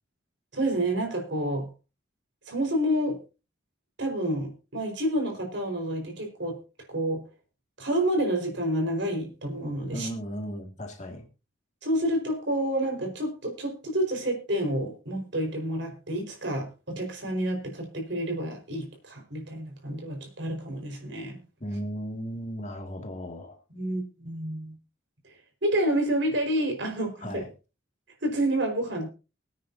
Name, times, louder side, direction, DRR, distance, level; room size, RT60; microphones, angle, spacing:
voice 1, 0.5-1.7 2.5-3.2 4.0-6.6 6.9-7.2 7.8-10.1 11.8-21.4 23.7-24.8 25.6-27.4 28.2-29.1, right 1 dB, 65° right, 4.7 m, -29 dB
voice 2, 9.9-11.3 21.6-23.6 27.2-27.5, equal, 35° left, 2.2 m, -36 dB
23.5 x 9.3 x 2.7 m
head